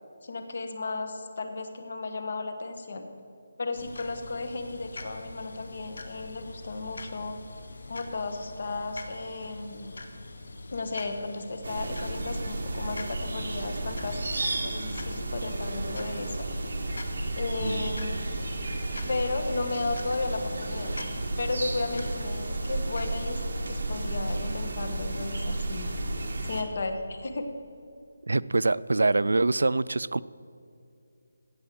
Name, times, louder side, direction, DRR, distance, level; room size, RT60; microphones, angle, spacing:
voice 1, 0.2-3.1 3.6-7.4 7.9-9.9 10.7-16.5 17.4-18.5 19.1-23.4 23.7-25.9 26.4-27.5, left 3 dB, 45° left, 7 dB, 1.3 m, -34 dB
sound 1, 3.7-23.3, left 2 dB, 70° left, 1.3 m, -44 dB
sound 2, 11.6-26.6, right 2 dB, 55° right, 1.6 m, -33 dB
voice 2, 28.3-30.2, right 2 dB, 90° right, 19 dB, 0.3 m, -25 dB
16.0 x 5.7 x 7.6 m, 2.5 s
hypercardioid pair, 175°, 0 cm